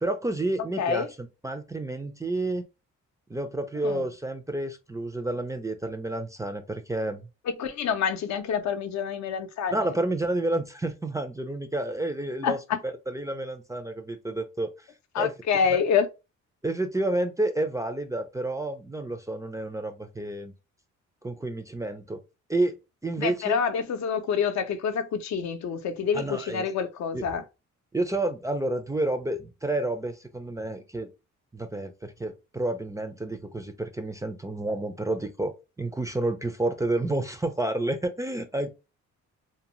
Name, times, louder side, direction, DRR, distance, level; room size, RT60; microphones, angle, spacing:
voice 1, 0.0-2.7 3.3-7.3 9.7-12.6 12.8-14.9 15.2-15.3 15.7-15.8 16.6-20.5 21.2-22.2 22.5-23.6 26.1-26.7 27.1-27.3 27.9-31.1 31.5-38.7, right 2 dB, 10° right, 0.4 m, -30 dB
voice 2, 7.6-9.9 12.4-12.8 15.1-16.1 23.2-27.4, left 7 dB, 65° left, 0.6 m, -27 dB
2.7 x 2.1 x 3.0 m
cardioid pair, 90°, 30 cm